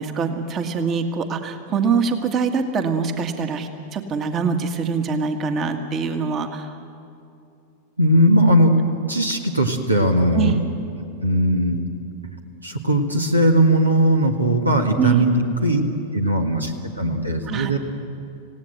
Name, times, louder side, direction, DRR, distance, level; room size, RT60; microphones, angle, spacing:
voice 1, 0.0-6.7 10.3-10.6 15.0-15.2 17.5-17.8, right 5 dB, 30° right, 6 dB, 1.7 m, -24 dB
voice 2, 8.0-8.8 9.1-10.6 11.0-11.8 12.6-15.8 16.1-17.8, right 1 dB, 85° right, 4 dB, 1.8 m, -19 dB
27.0 x 17.0 x 7.9 m, 2.7 s
figure-of-eight pair, 90°, 0 cm